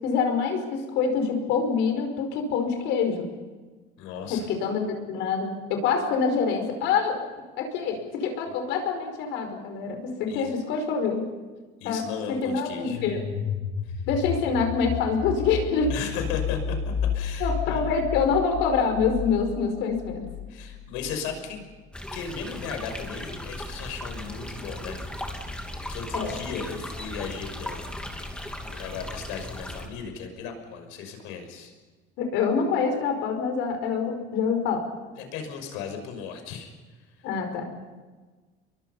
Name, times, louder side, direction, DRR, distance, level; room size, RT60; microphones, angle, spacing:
voice 1, 0.0-3.3 4.3-4.8 5.1-7.2 7.6-11.2 11.8-12.0 12.3-13.2 14.1-15.9 17.4-20.2 26.1-26.4 32.2-34.8 37.2-37.7, left 5 dB, 60° left, 5 dB, 5.3 m, -26 dB
voice 2, 4.0-4.5 10.3-10.6 11.8-13.0 13.8-13.9 15.9-16.8 17.1-17.8 20.5-21.7 22.1-25.0 25.9-27.9 28.7-31.7 35.2-36.7, left 6 dB, 80° left, 5 dB, 6.0 m, -36 dB
sound 1, 12.8-21.5, left 7 dB, 45° left, 1.8 m, -32 dB
sound 2, 21.9-29.9, left 1 dB, 5° left, 2.6 m, -37 dB
30.0 x 23.0 x 5.6 m, 1.3 s
cardioid pair, 165°, 21 cm